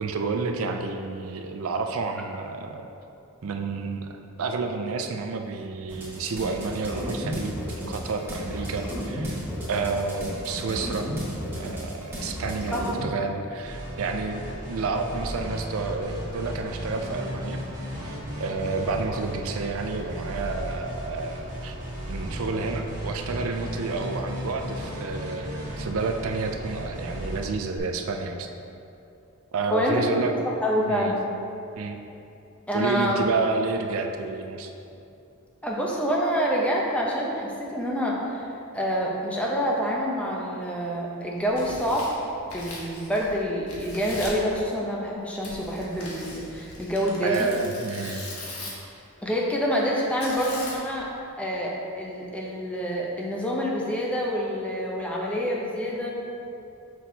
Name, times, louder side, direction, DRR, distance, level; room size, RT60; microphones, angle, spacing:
voice 1, 0.0-2.9 3.4-4.1 4.4-9.4 9.7-11.1 11.5-17.6 18.0-21.7 22.1-28.5 29.5-30.3 30.9-31.1 31.8-32.0 32.7-34.7 47.2-48.2, right 4 dB, 70° right, 4 dB, 0.4 m, -30 dB
sound 1, 5.9-13.0, equal, 10° right, 1.4 m, -33 dB
sound 2, 13.6-27.8, equal, 40° right, 1.4 m, -35 dB
voice 2, 29.7-31.3 32.7-33.2 35.6-42.1 42.5-47.5 49.2-51.1 51.4-56.1, equal, 5° left, -3 dB, 0.7 m, -27 dB
Tearing, 41.4-43.4 43.7-44.4 45.4-48.9 50.2-51.0, left 2 dB, 90° left, 1.3 m, -40 dB
6.1 x 6.0 x 2.8 m, 2.7 s
head